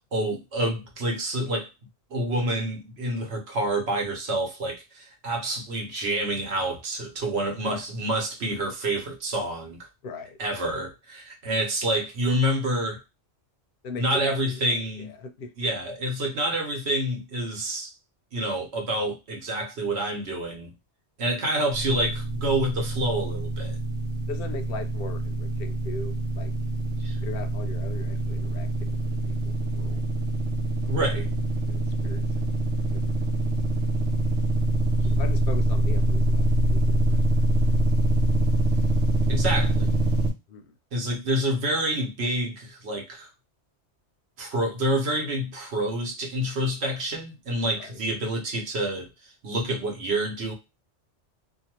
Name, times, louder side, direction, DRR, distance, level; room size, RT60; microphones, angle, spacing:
voice 1, 0.0-1.7 2.1-9.8 10.4-13.0 14.0-15.1 15.6-17.9 18.3-20.7 21.2-23.8 27.0-27.2 30.9-31.3 39.3-39.9 40.9-43.3 44.4-49.1 49.4-50.5, right 1 dB, 65° right, 1.1 m, -28 dB
voice 2, 10.0-10.4 13.8-15.5 21.3-21.6 24.3-26.5 27.2-30.0 30.8-31.2 31.7-32.4 32.9-33.0 35.0-37.9 38.2-38.4 39.6-39.7 40.5-40.7 47.7-48.0, left 3 dB, 60° left, 0.7 m, -40 dB
sound 1, 21.7-40.3, right 1 dB, 90° right, 0.9 m, -25 dB
2.6 x 2.3 x 2.8 m
omnidirectional pair, 1.2 m